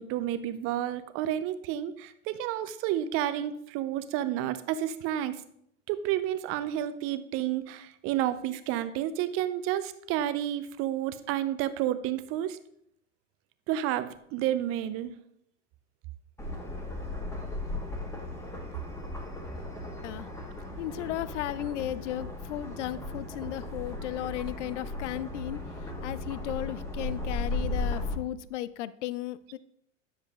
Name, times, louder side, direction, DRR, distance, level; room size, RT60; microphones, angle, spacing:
voice 1, 0.0-5.4 5.9-12.6 13.7-15.1, right 12 dB, 35° right, 13 dB, 0.6 m, -30 dB
sound 1, 16.4-28.2, left 2 dB, 5° left, 1.4 m, -36 dB
voice 2, 20.8-25.6 26.0-29.6, left 13 dB, 65° left, 18 dB, 0.5 m, -35 dB
9.8 x 7.3 x 2.4 m, 0.72 s
figure-of-eight pair, 90°, 39 cm